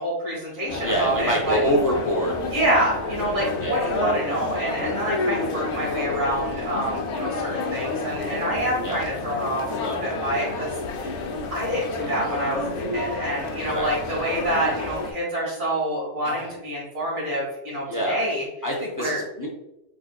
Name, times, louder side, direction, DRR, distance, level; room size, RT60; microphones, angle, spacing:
voice 1, 0.0-1.6 2.5-11.1 11.5-18.4 19.0-19.2, right 1 dB, 85° right, -6 dB, 2.1 m, -27 dB
sound 1, 0.7-15.1, left 3 dB, 75° left, 0.9 m, -29 dB
voice 2, 0.7-2.4 3.6-3.8 8.8-9.0 13.7-13.9 16.2-16.5 17.9-18.2 18.6-19.5, equal, 30° left, -2 dB, 0.4 m, -25 dB
3.6 x 3.4 x 2.2 m, 0.91 s
omnidirectional pair, 1.2 m